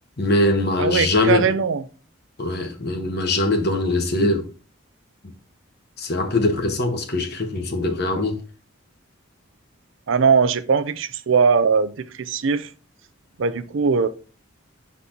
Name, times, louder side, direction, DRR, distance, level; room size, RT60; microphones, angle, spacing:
voice 1, 0.2-1.4 2.4-4.5 6.0-8.4, left 2 dB, 50° left, 1.1 m, -22 dB
voice 2, 0.8-1.8 10.1-12.7 13.4-14.1, right 5 dB, 65° right, 0.5 m, -20 dB
5.9 x 4.2 x 3.9 m
head